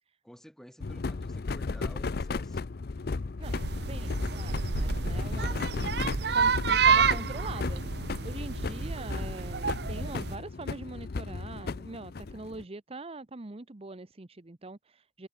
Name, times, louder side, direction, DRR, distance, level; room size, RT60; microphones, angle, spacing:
voice 1, 0.2-2.6, equal, 5° left, 4.3 m, -52 dB
sound 1, 0.8-12.6, left 3 dB, 60° left, 0.6 m, -35 dB
voice 2, 3.4-6.0 6.3-7.8 8.2-15.3, right 2 dB, 35° right, 0.9 m, -43 dB
sound 2, 3.4-10.4, right 6 dB, 65° right, 0.8 m, -29 dB
head